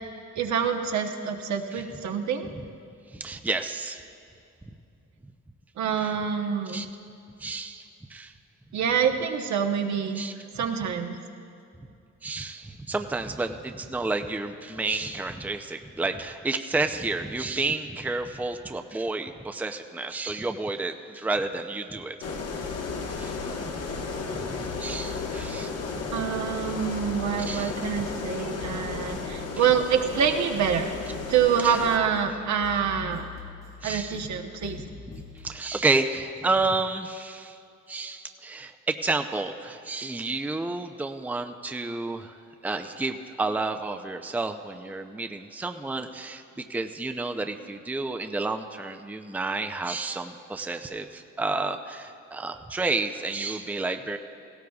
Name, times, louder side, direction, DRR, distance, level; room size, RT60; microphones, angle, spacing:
voice 1, 0.4-2.5 5.8-6.8 8.7-10.2 10.6-11.2 26.1-31.0 31.3-33.2 33.8-34.8, right 7 dB, 65° right, 4 dB, 1.1 m, -26 dB
voice 2, 3.1-4.0 4.7-4.8 6.0-6.1 6.7-6.9 7.4-8.3 10.2-10.3 12.2-22.2 23.2-23.4 24.0-24.1 24.3-25.7 27.4-27.7 31.6-31.8 33.8-34.2 35.4-37.6 37.9-54.2, right 3 dB, 5° right, 6 dB, 0.5 m, -30 dB
sound 1, 22.2-32.0, left 4 dB, 55° left, 1.3 m, -34 dB
sound 2, 22.3-35.6, left 8 dB, 80° left, 3.4 m, -45 dB
17.5 x 16.0 x 2.4 m, 2.6 s
cardioid pair, 90°, 30 cm